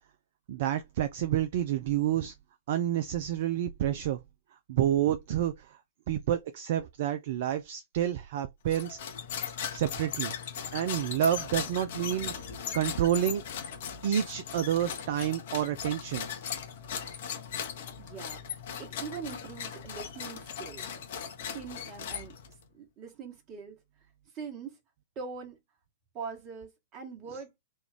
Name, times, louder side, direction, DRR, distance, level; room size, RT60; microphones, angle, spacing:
voice 1, 0.5-2.3 2.7-4.2 4.7-5.8 6.1-9.1 9.7-10.3 10.7-12.3 12.7-13.4 14.0-16.4, right 11 dB, 45° right, 0.3 m, -29 dB
Plastic Forks Rub, 8.7-22.6, left 8 dB, 50° left, 0.7 m, -38 dB
voice 2, 18.0-18.4 18.8-22.3 22.7-23.8 24.3-24.8 25.1-25.6 26.1-27.5, right 5 dB, 30° right, 1.3 m, -42 dB
3.1 x 2.3 x 3.4 m
figure-of-eight pair, 110°, 0 cm